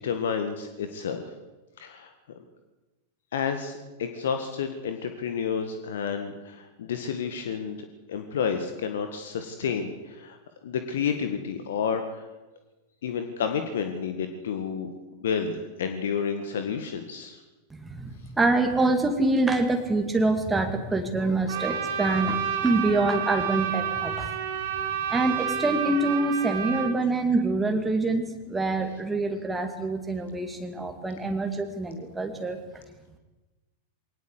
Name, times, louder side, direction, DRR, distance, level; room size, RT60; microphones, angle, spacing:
voice 1, 0.0-1.3 1.8-2.1 3.3-10.4 10.6-12.3 13.0-17.4, left 6 dB, 60° left, 7 dB, 1.9 m, -30 dB
voice 2, 17.7-24.3 25.1-32.6, right 2 dB, 10° right, 3 dB, 2.5 m, -26 dB
Trumpet, 21.5-26.9, right 8 dB, 55° right, 3.8 m, -30 dB
22.0 x 18.5 x 8.3 m, 1.1 s
figure-of-eight pair, 90°, 0 cm